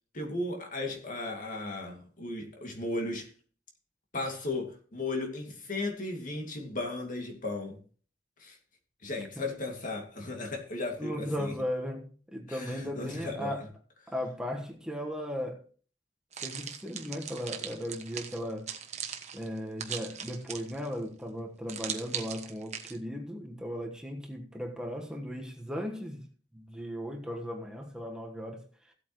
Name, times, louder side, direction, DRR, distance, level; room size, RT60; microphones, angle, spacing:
voice 1, 0.1-3.3 4.1-7.8 8.4-8.6 9.0-11.5 12.5-13.5, left 2 dB, 50° left, 2.3 m, -35 dB
voice 2, 11.0-13.6 14.1-15.6 16.4-18.7 19.3-26.2 26.5-28.9, equal, 5° right, 1.3 m, -37 dB
sound 1, 16.3-20.9 21.7-23.0, right 8 dB, 40° right, 1.2 m, -39 dB
16.0 x 8.3 x 3.1 m
head